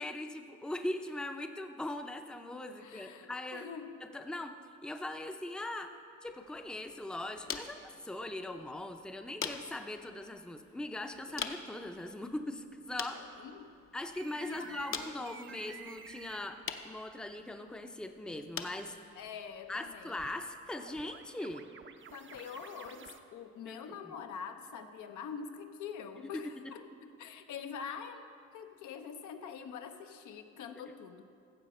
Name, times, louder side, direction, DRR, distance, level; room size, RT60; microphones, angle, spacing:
voice 1, 0.0-3.6 4.0-4.6 4.8-5.9 6.2-13.3 13.9-19.0 19.7-21.7 23.7-24.1 26.3-26.4, left 1 dB, 5° left, 6 dB, 0.6 m, -40 dB
voice 2, 2.8-4.0 13.1-13.7 14.4-14.8 19.2-20.3 22.1-31.2, left 6 dB, 75° left, 6 dB, 0.8 m, -45 dB
sound 1, 6.3-21.3, left 6 dB, 45° left, 0.7 m, -47 dB
sound 2, 14.1-16.5 20.2-23.2, right 6 dB, 40° right, 0.6 m, -51 dB
14.5 x 7.4 x 4.2 m, 2.5 s
cardioid pair, 90°, 30 cm